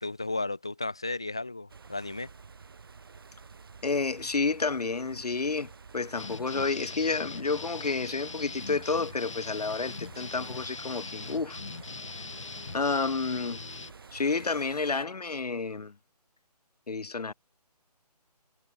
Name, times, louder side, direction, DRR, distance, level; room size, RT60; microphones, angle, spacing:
voice 1, 0.0-2.3, left 2 dB, 5° left, 0.7 m, -34 dB
sound 1, 1.7-15.1, right 5 dB, 35° right, 3.1 m, -49 dB
voice 2, 3.8-11.6 12.1-12.2 12.7-13.6 14.1-15.9 16.9-17.3, left 4 dB, 70° left, 1.2 m, -30 dB
sound 2, 6.2-13.9, left 4 dB, 45° left, 1.7 m, -41 dB
figure-of-eight pair, 175°, 21 cm